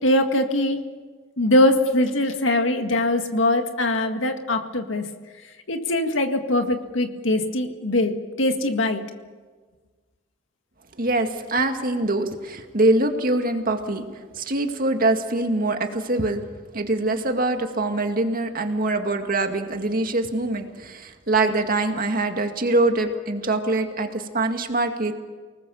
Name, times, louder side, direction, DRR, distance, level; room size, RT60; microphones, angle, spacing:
voice 1, 0.0-0.8 1.4-5.0 5.7-9.0, left 1 dB, 85° left, 6 dB, 2.0 m, -22 dB
voice 2, 11.0-14.0 14.4-16.4 16.7-25.1, right 2 dB, 50° right, 5 dB, 2.0 m, -23 dB
29.0 x 19.5 x 7.0 m, 1.4 s
head